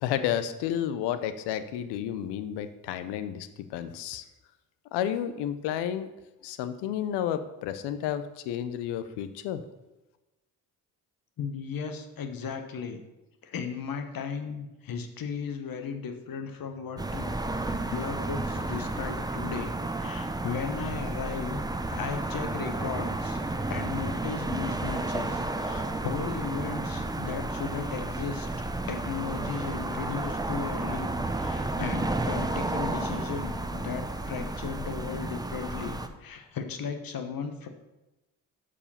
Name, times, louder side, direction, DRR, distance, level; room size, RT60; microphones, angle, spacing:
voice 1, 0.0-3.5 3.7-4.2 4.9-6.1 6.4-9.6, left 10 dB, 90° left, 11 dB, 0.6 m, -31 dB
voice 2, 11.4-13.0 13.4-17.3 17.6-19.7 20.0-21.6 21.9-23.4 23.7-28.5 28.9-37.7, left 6 dB, 60° left, 6 dB, 1.1 m, -36 dB
sound 1, 17.0-36.1, right 2 dB, 10° right, 0.7 m, -32 dB
6.9 x 4.9 x 5.5 m, 1.0 s
supercardioid pair, 55°, 39 cm